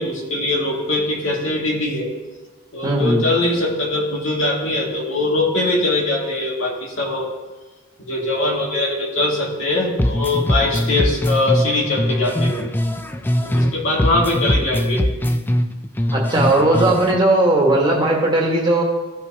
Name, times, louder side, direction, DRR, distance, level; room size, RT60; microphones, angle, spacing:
voice 1, 0.0-2.1 2.7-7.3 8.0-12.6 13.4-15.0, left 2 dB, 85° left, -3 dB, 2.1 m, -21 dB
voice 2, 2.8-3.2 16.1-18.8, right 2 dB, 25° right, -1 dB, 1.5 m, -17 dB
sound 1, 10.0-13.7 14.0-17.2, left 1 dB, 10° left, 0.3 m, -21 dB
15.5 x 5.3 x 2.9 m, 1.2 s
head